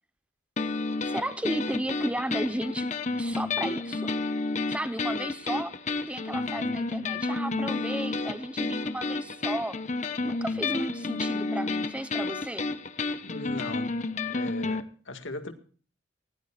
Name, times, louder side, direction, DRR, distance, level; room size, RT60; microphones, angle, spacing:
sound 1, 0.6-14.8, left 3 dB, 40° left, 0.9 m, -31 dB
voice 1, 1.0-2.9 3.2-4.2 4.7-5.7 6.1-9.8 10.2-12.7, right 1 dB, 5° right, 1.0 m, -34 dB
voice 2, 13.2-13.9 14.3-15.5, left 2 dB, 85° left, 2.0 m, -38 dB
19.0 x 17.5 x 2.5 m
head